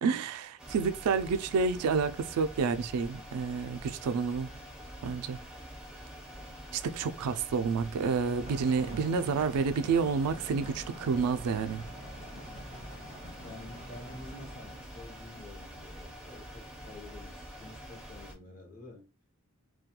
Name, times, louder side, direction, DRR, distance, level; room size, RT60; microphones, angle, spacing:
voice 1, 0.0-4.5 5.0-5.4 6.7-11.8, right 5 dB, 85° right, 0.3 m, -29 dB
sound 1, 0.6-18.3, equal, 5° right, 0.4 m, -46 dB
sound 2, 8.4-14.8, equal, 70° left, 1.0 m, -47 dB
voice 2, 11.0-11.3 12.3-12.7 13.4-19.1, left 2 dB, 40° left, 0.7 m, -50 dB
2.2 x 2.2 x 2.8 m
head